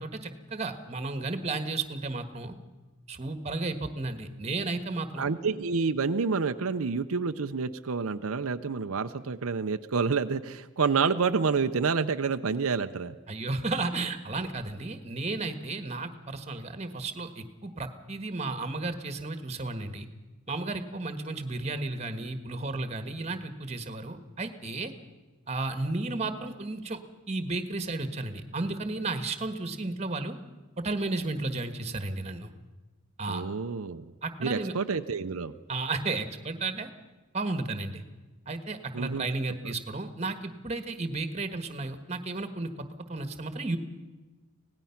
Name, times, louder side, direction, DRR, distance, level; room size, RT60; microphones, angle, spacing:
voice 1, 0.0-2.5 3.1-5.3 13.3-20.1 20.5-24.9 25.5-27.0 27.3-30.3 30.8-32.5 33.2-33.4 34.2-34.7 35.7-36.9 37.3-38.0 38.5-43.8, right 3 dB, 30° right, 9 dB, 1.4 m, -33 dB
voice 2, 5.2-13.2 33.3-34.1 34.4-35.5 38.9-39.3, right 5 dB, 80° right, 8 dB, 0.7 m, -28 dB
25.0 x 18.0 x 5.8 m, 1.2 s
head